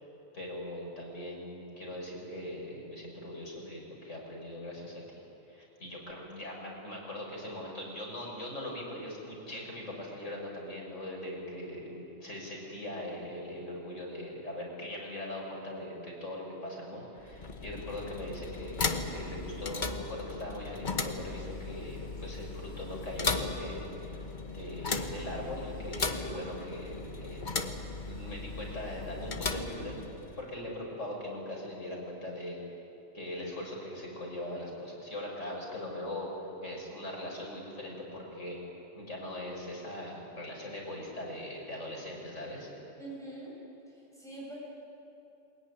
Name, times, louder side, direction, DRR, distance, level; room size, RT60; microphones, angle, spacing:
voice 1, 0.3-5.2 5.5-24.2 24.5-27.5 28.0-30.0 30.4-32.6 33.1-36.3 36.6-38.6 39.0-42.7, left 1 dB, 70° left, -2 dB, 6.2 m, -40 dB
sound 1, 17.2-30.5, left 3 dB, 40° left, 1.3 m, -37 dB
voice 2, 43.0-43.5 43.9-44.5, right 2 dB, ahead, -6 dB, 7.5 m, -44 dB
21.5 x 20.5 x 9.8 m, 2.9 s
omnidirectional pair, 1.3 m